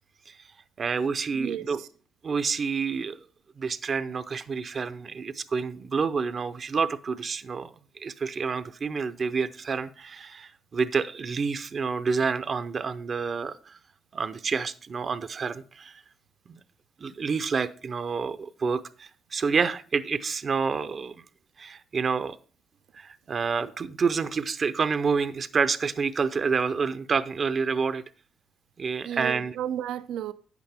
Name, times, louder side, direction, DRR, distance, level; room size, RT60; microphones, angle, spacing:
voice 1, 0.8-1.8 2.2-3.2 3.6-13.8 14.1-15.9 16.5-16.6 17.0-21.2 21.6-22.4 22.9-28.0 28.8-29.6, right 5 dB, 45° right, 0.6 m, -28 dB
voice 2, 1.3-1.7 29.0-30.3, right 10 dB, 85° right, 0.5 m, -32 dB
9.5 x 8.2 x 3.5 m
cardioid pair, 90°, 0 cm